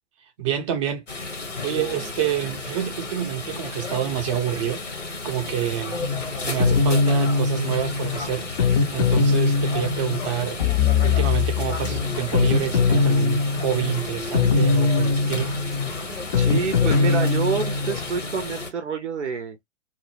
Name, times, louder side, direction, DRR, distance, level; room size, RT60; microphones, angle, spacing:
voice 1, 0.4-1.0 1.6-4.8 5.2-6.0 6.4-8.5 8.9-10.6 11.0-15.5, right 10 dB, 25° right, 0.5 m, -27 dB
sound 1, 1.1-18.7, left 3 dB, 85° left, 0.9 m, -33 dB
voice 2, 1.7-2.1 16.4-19.6, right 6 dB, 75° right, 0.5 m, -28 dB
sound 2, 6.0-18.2, left 4 dB, 35° left, 0.4 m, -22 dB
2.1 x 2.0 x 3.0 m
figure-of-eight pair, 110°, 36 cm